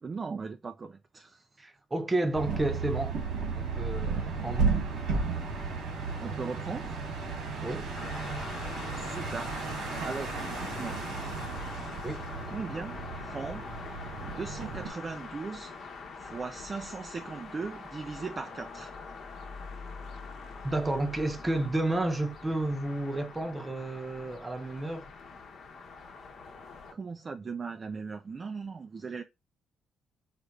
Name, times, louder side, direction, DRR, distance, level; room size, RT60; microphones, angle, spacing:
voice 1, 0.0-1.5 6.2-7.0 9.0-9.5 10.0-11.0 12.5-13.6 14.2-15.7 16.2-18.9 26.9-29.2, right 4 dB, 35° right, 0.4 m, -38 dB
voice 2, 1.6-3.2 3.5-4.7 7.6-7.9 12.0-12.2 20.6-25.1, right 2 dB, 20° right, 0.7 m, -31 dB
sound 1, 2.3-14.9, right 4 dB, 80° right, 1.9 m, -34 dB
sound 2, 7.9-26.9, left 4 dB, 65° left, 0.9 m, -44 dB
4.9 x 2.4 x 3.1 m
cardioid pair, 90°, 0 cm